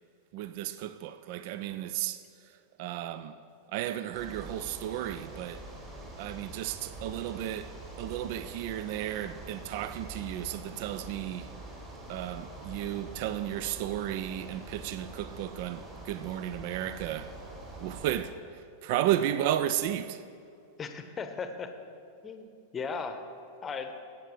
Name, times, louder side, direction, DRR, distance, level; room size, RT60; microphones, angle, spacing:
voice 1, 0.3-2.2 2.8-3.4 3.7-5.6 6.2-7.7 8.0-11.5 12.1-17.4 17.8-20.2, right 12 dB, 50° right, 0.3 m, -33 dB
sound 1, 4.1-18.2, right 2 dB, 30° right, 2.9 m, -45 dB
voice 2, 20.8-21.7 22.2-23.2 23.6-23.9, left 5 dB, 20° left, 0.8 m, -37 dB
17.0 x 8.2 x 3.2 m
figure-of-eight pair, 90°, 0 cm